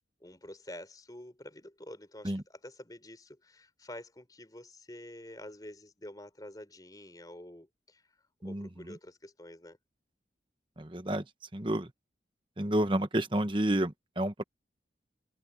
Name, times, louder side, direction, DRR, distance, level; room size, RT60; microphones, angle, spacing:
voice 1, 0.2-8.0 8.4-9.8, left 1 dB, 20° left, 3.8 m, -48 dB
voice 2, 10.8-11.2 11.5-11.9 12.6-14.4, right 1 dB, 25° right, 1.2 m, -30 dB
head